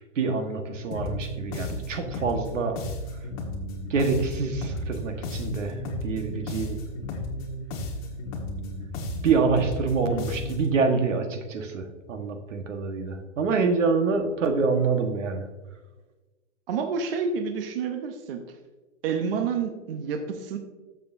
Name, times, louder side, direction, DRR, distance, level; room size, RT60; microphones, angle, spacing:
voice 1, 0.0-2.8 3.9-6.8 9.2-15.5, right 4 dB, 85° right, 5 dB, 1.5 m, -26 dB
sound 1, 0.9-10.8, left 1 dB, 30° left, 1.5 m, -34 dB
voice 2, 16.7-18.4 19.0-20.6, right 6 dB, 50° right, 5 dB, 0.9 m, -29 dB
13.0 x 6.8 x 2.6 m, 1.2 s
hypercardioid pair, 160°, 37 cm